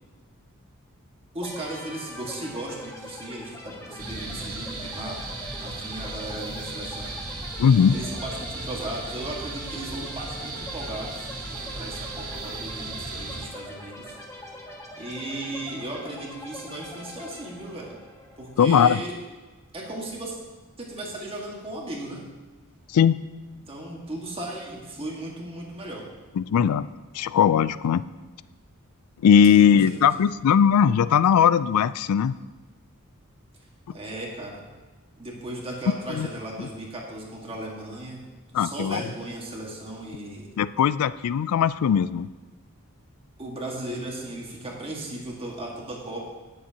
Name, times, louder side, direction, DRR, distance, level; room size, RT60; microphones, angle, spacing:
voice 1, 1.3-5.2 5.6-7.1 7.9-11.3 11.7-14.2 15.0-18.0 18.4-19.1 19.7-20.4 20.8-22.2 23.7-26.1 29.5-30.1 33.9-34.7 35.2-38.2 38.6-40.5 43.4-46.3, right 1 dB, 25° right, -2 dB, 1.7 m, -36 dB
sound 1, 1.4-19.0, left 1 dB, 15° left, 1.3 m, -43 dB
sound 2, 4.0-13.5, right 2 dB, 75° right, 2.4 m, -36 dB
voice 2, 7.6-8.0 18.6-19.0 22.9-23.2 26.4-26.9 27.1-28.0 29.2-32.3 36.1-36.3 36.6-36.7 38.5-39.0 40.6-42.3, left 7 dB, 80° left, 16 dB, 0.3 m, -19 dB
18.0 x 7.1 x 2.9 m, 1.3 s
head